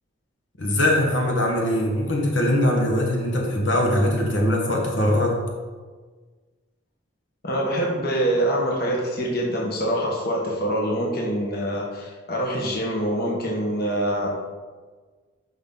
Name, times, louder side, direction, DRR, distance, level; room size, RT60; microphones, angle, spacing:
voice 1, 0.6-5.4, left 1 dB, 70° left, 0 dB, 1.5 m, -21 dB
voice 2, 7.4-14.3, right 1 dB, 50° left, -2 dB, 1.4 m, -25 dB
9.8 x 5.8 x 3.9 m, 1.4 s
head